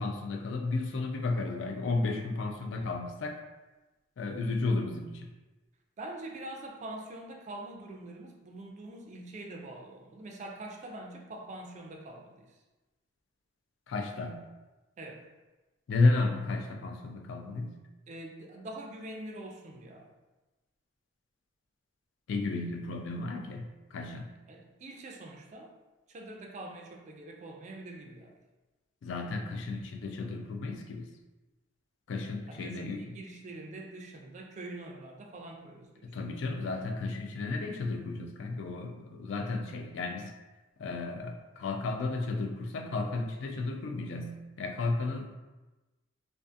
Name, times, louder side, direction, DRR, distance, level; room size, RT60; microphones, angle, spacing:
voice 1, 0.0-3.4 4.2-5.3 13.9-14.5 15.9-17.8 22.3-24.3 29.0-31.1 32.1-33.0 36.0-40.3 40.8-45.3, left 3 dB, 75° left, 4 dB, 0.3 m, -33 dB
voice 2, 6.0-12.6 15.0-15.2 18.1-20.1 24.5-25.7 26.1-28.4 32.5-36.1, right 2 dB, 40° right, 1 dB, 0.3 m, -44 dB
2.5 x 2.4 x 2.4 m, 1.1 s
head